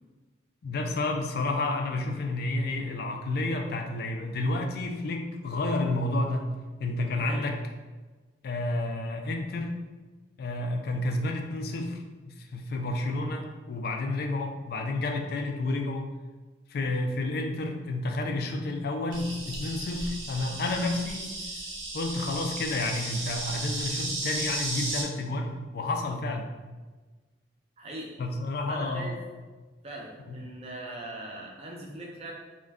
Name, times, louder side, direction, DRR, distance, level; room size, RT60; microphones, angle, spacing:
voice 1, 0.6-6.5 6.8-7.6 8.4-9.7 10.4-16.1 16.7-21.3 21.9-26.5 28.2-29.1 30.3-30.4, left 2 dB, 55° left, 3 dB, 0.3 m, -30 dB
voice 2, 7.1-7.5 27.8-28.2 28.7-29.2 29.8-32.3, right 1 dB, 35° right, -1 dB, 0.5 m, -40 dB
Insect, 19.1-25.0, right 2 dB, 85° right, 0.7 m, -35 dB
2.4 x 2.2 x 3.4 m, 1.3 s
head